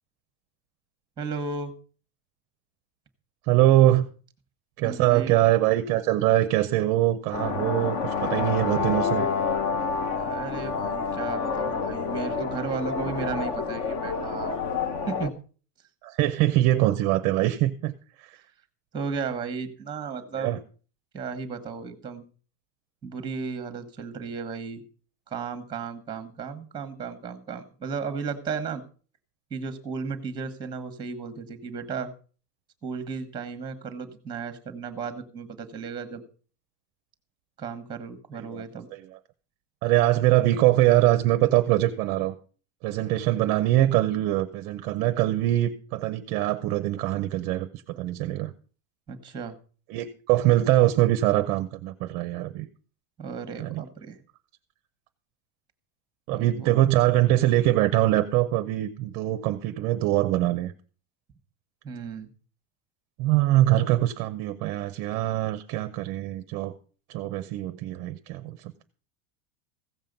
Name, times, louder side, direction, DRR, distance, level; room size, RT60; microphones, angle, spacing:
voice 1, 1.2-1.7 4.8-5.3 10.1-14.7 15.1-15.3 18.9-20.5 21.1-22.2 23.0-24.8 25.3-28.8 29.5-32.1 32.8-36.2 37.6-38.9 49.1-49.6 53.2-54.2 56.3-56.8 61.8-62.3, right 5 dB, 10° right, 11 dB, 1.2 m, -34 dB
voice 2, 3.5-4.1 4.8-9.3 16.0-17.9 18.2-18.4 20.4-20.6 38.5-38.6 39.8-42.3 42.8-48.5 49.9-52.7 53.6-53.8 56.3-60.7 63.2-66.7 67.1-68.8, right 15 dB, 35° right, 10 dB, 0.6 m, -23 dB
sound 1, 7.3-15.3, left 5 dB, 35° left, 0.8 m, -28 dB
15.5 x 7.4 x 5.3 m, 0.40 s
supercardioid pair, 175°, 46 cm